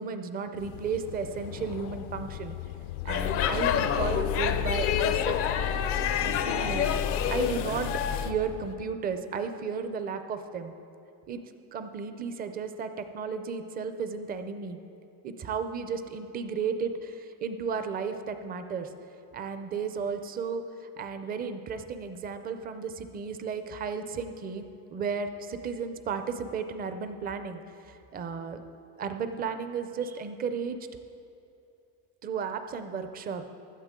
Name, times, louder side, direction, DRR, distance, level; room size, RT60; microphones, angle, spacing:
voice 1, 0.0-2.6 3.0-5.4 6.2-7.0 7.3-10.7 11.3-11.4 11.7-14.8 15.2-18.9 19.3-20.6 21.0-24.6 24.9-28.6 29.0-30.8 32.2-33.5, right 5 dB, 20° right, 9 dB, 0.4 m, -34 dB
sound 1, 0.6-8.8, left 13 dB, 85° left, 0.6 m, -38 dB
Speech / Shout / Subway metro underground, 3.1-8.3, left 8 dB, 35° left, 0.4 m, -28 dB
16.5 x 11.5 x 3.7 m, 2.8 s
cardioid pair, 160°, 43 cm